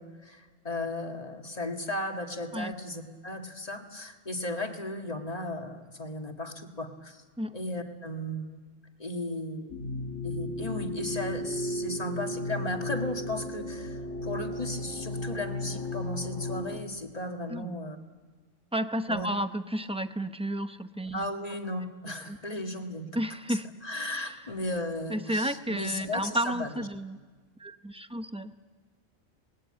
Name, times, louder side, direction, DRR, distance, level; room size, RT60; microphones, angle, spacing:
voice 1, 0.0-7.2 7.5-8.6 9.0-9.8 10.2-18.0 19.1-19.3 21.1-23.1 23.5-23.6 23.8-26.9, left 1 dB, 30° left, 3 dB, 2.0 m, -35 dB
sound 1, 9.7-16.8, left 1 dB, 75° left, 2.0 m, -34 dB
voice 2, 18.7-21.3 22.3-22.4 23.1-23.7 24.1-24.4 25.1-27.2 27.6-28.5, right 1 dB, 5° right, 9 dB, 0.6 m, -32 dB
28.0 x 20.0 x 8.8 m, 1.4 s
omnidirectional pair, 1.3 m